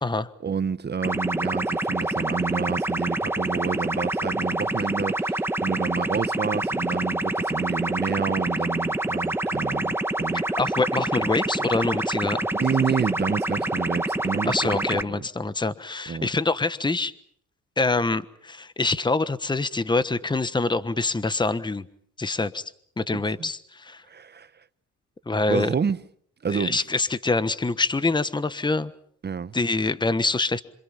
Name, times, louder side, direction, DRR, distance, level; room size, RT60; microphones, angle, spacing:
voice 1, 0.4-10.4 11.2-11.3 12.5-15.2 16.1-16.3 23.1-23.5 24.1-24.5 25.5-26.0 26.4-26.8 29.2-29.5, right 6 dB, 35° right, 1.1 m, -29 dB
sound 1, 1.0-15.0, right 1 dB, 10° right, 1.5 m, -27 dB
voice 2, 10.6-12.4 14.4-17.1 17.8-21.8 22.2-22.6 23.0-24.0 25.3-25.7 26.5-28.9 29.5-30.6, left 3 dB, 15° left, 1.2 m, -25 dB
28.0 x 26.5 x 5.8 m
cardioid pair, 90°, 30 cm